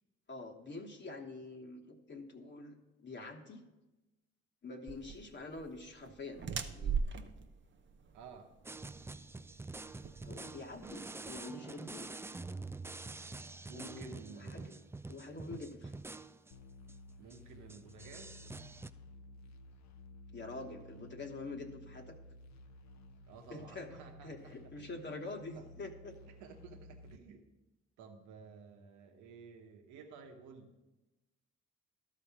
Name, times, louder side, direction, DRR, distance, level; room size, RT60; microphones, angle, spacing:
voice 1, 0.3-3.6 4.6-7.0 10.1-12.1 13.7-14.7 15.1-16.0 20.3-22.1 23.5-23.9 24.2-26.2, left 3 dB, 40° left, 2 dB, 1.2 m, -46 dB
sound 1, 4.9-11.0, right 6 dB, 40° right, 0.8 m, -40 dB
voice 2, 8.1-8.5 10.7-11.4 13.7-14.9 17.2-18.5 23.3-24.9 25.5-25.6 26.3-27.5 28.0-30.8, right 5 dB, 85° right, 5 dB, 1.0 m, -53 dB
sound 2, 8.6-16.5 16.9-17.0 17.3-17.4 17.7-18.9, right 3 dB, 10° right, 0.3 m, -46 dB
sound 3, 16.5-27.2, left 1 dB, 70° left, 0.8 m, -55 dB
12.0 x 4.2 x 7.1 m, 1.1 s
supercardioid pair, 55°, 29 cm